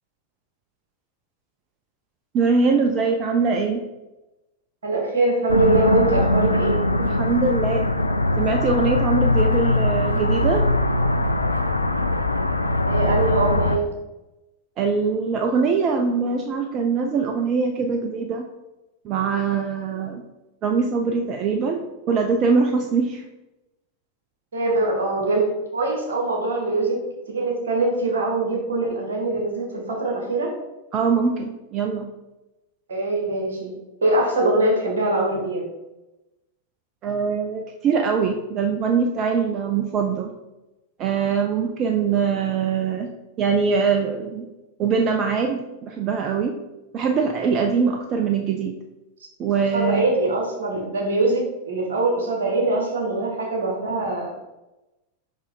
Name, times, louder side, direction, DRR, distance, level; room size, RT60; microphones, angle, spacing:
voice 1, 2.3-3.8 7.0-7.9 8.4-10.7 14.8-18.5 19.0-20.2 20.6-23.2 30.9-32.1 37.0-40.3 41.0-43.1 43.4-44.4 44.8-46.5 46.9-48.8 49.4-50.1, right 5 dB, 35° right, 3 dB, 0.6 m, -22 dB
voice 2, 4.8-6.8 12.9-13.9 24.5-27.0 27.3-30.5 32.9-33.8 34.0-35.6 49.7-54.4, right 2 dB, 65° right, 0 dB, 2.0 m, -23 dB
sound 1, 5.5-13.8, left 2 dB, 85° left, 0.4 m, -21 dB
5.6 x 5.6 x 3.9 m, 1.0 s
figure-of-eight pair, 90°, 0 cm